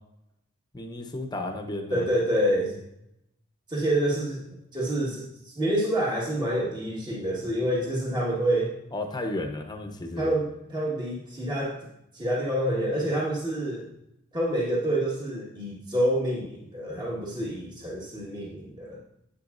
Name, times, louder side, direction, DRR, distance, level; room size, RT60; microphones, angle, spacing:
voice 1, 0.7-2.1 8.9-10.3, left 2 dB, 20° left, 4 dB, 0.9 m, -33 dB
voice 2, 1.9-2.8 3.7-4.4 4.7-8.7 10.2-11.9 12.1-13.9 14.3-19.0, right 1 dB, 20° right, -4 dB, 1.6 m, -27 dB
10.0 x 8.5 x 2.6 m, 0.82 s
head